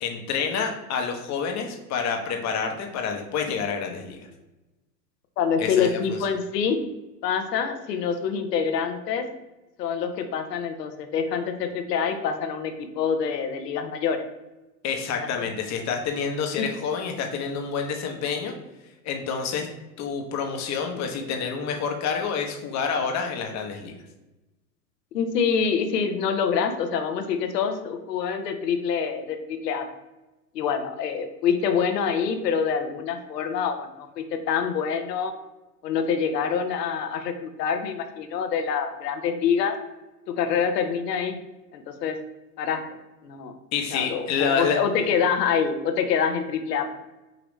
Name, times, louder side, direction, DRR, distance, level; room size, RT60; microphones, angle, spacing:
voice 1, 0.0-4.2 5.6-6.2 14.8-18.5 19.0-19.7 20.0-23.9 43.7-44.8, left 6 dB, 35° left, 3 dB, 0.9 m, -28 dB
voice 2, 5.4-6.8 7.2-9.3 9.8-14.2 15.2-15.3 16.6-16.7 25.1-29.9 30.5-35.3 35.8-39.8 40.3-41.4 41.7-42.2 42.6-42.8 43.2-43.5 43.9-46.9, left 6 dB, 80° left, 7 dB, 0.8 m, -26 dB
5.1 x 2.9 x 3.0 m, 1.0 s
hypercardioid pair, 95°, 48 cm